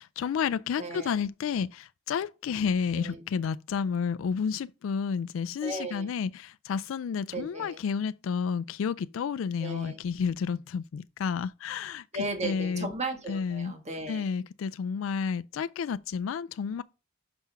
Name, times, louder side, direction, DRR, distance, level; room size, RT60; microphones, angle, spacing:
voice 1, 0.0-12.0 12.4-12.9 13.3-13.7 14.1-16.8, left 6 dB, 90° left, 0.3 m, -31 dB
voice 2, 0.8-1.1 2.9-3.2 5.6-6.1 7.3-7.8 9.6-10.0 12.1-14.3, right 2 dB, 35° right, 1.6 m, -35 dB
6.0 x 5.6 x 5.5 m
head